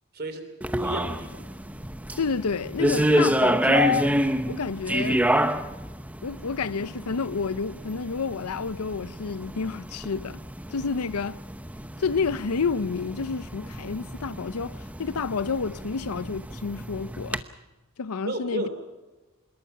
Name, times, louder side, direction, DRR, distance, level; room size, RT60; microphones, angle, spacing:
voice 1, 0.1-0.4 0.8-1.4 18.2-18.7, right 1 dB, 45° right, 3.5 m, -32 dB
sound 1, 0.6-17.4, right 1 dB, 5° right, 0.8 m, -29 dB
voice 2, 2.2-4.2 4.5-5.2 6.2-10.4 10.7-11.4 12.0-17.4 18.0-18.7, left 5 dB, 80° left, 0.7 m, -29 dB
25.5 x 21.5 x 5.8 m
head